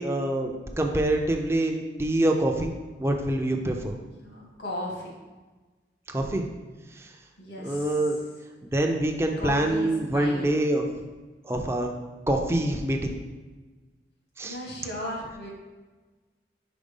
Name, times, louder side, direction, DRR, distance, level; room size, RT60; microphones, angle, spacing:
voice 1, 0.0-2.7 3.0-3.9 6.1-6.4 7.0-7.1 7.6-8.2 8.6-10.9 11.4-11.9 12.3-13.1 14.4-14.6, right 1 dB, 15° right, 2 dB, 0.5 m, -25 dB
voice 2, 4.2-5.1 7.4-8.2 9.4-10.5 14.4-15.5, left 1 dB, 80° left, -2 dB, 2.0 m, -36 dB
5.1 x 4.6 x 5.4 m, 1.3 s
head